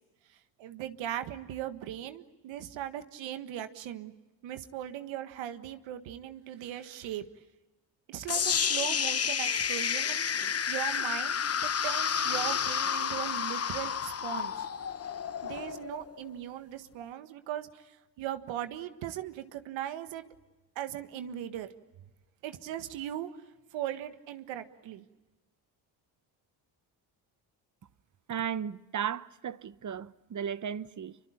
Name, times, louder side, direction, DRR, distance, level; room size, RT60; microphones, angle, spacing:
voice 1, 0.6-4.1 4.4-7.3 8.1-14.7 15.4-20.2 20.7-21.7 22.4-23.3 23.7-25.1, right 11 dB, 85° right, 1.7 m, -39 dB
sound 1, 8.3-16.3, left 7 dB, 35° left, 1.0 m, -30 dB
voice 2, 28.3-31.2, right 8 dB, 40° right, 1.0 m, -35 dB
27.0 x 24.0 x 8.7 m
cardioid pair, 80°, 44 cm